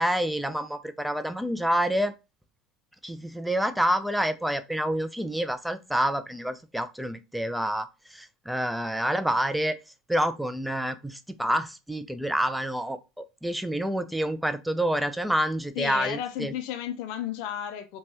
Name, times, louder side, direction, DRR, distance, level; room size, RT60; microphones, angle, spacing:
voice 1, 0.0-2.1 3.0-9.8 10.1-16.5, equal, 5° right, 0.4 m, -28 dB
voice 2, 15.8-18.0, left 10 dB, 65° left, 0.4 m, -33 dB
2.9 x 2.2 x 2.7 m
hypercardioid pair, 75°, 0 cm